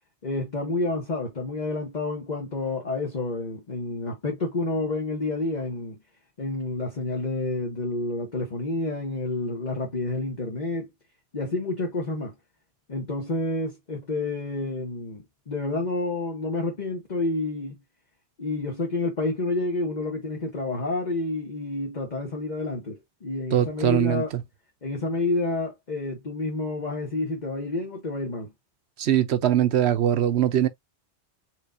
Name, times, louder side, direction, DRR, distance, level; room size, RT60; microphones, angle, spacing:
voice 1, 0.2-6.0 6.4-10.9 11.3-12.3 12.9-17.8 18.4-24.3 24.8-28.5, left 2 dB, 40° left, 1.3 m, -29 dB
voice 2, 23.5-24.2 29.0-30.7, right 11 dB, 70° right, 0.9 m, -21 dB
4.7 x 3.7 x 2.6 m
omnidirectional pair, 1.2 m